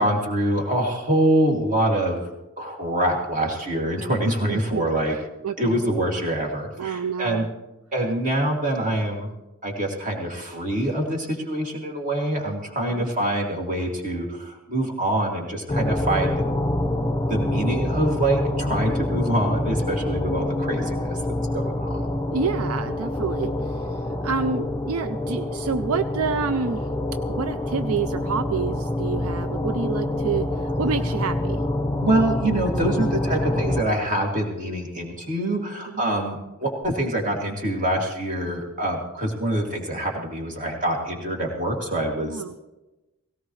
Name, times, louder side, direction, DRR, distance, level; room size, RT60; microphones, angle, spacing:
voice 1, 0.0-2.3 2.6-5.1 5.6-7.5 7.9-9.3 9.6-16.3 17.3-21.2 21.5-22.1 29.6-29.8 32.0-42.4, right 1 dB, 35° right, 0 dB, 2.5 m, -25 dB
voice 2, 4.5-4.9 5.4-5.9 6.8-7.5 12.9-13.1 22.3-23.8 24.2-26.9 27.3-31.6 42.2-42.6, right 5 dB, 70° right, 11 dB, 0.4 m, -28 dB
sound 1, 15.7-33.8, left 1 dB, 15° left, 1.5 m, -26 dB
17.5 x 17.5 x 3.2 m, 1.0 s
head